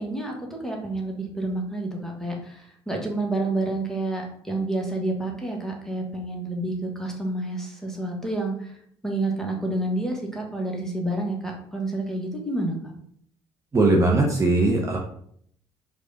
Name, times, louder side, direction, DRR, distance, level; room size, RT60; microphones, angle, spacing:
voice 1, 0.0-4.2 4.5-8.7 9.0-12.9, right 2 dB, 5° left, 0 dB, 1.3 m, -29 dB
voice 2, 13.7-15.0, right 2 dB, 25° right, -1 dB, 0.8 m, -19 dB
4.8 x 2.5 x 3.9 m, 0.65 s
figure-of-eight pair, 50°, 13 cm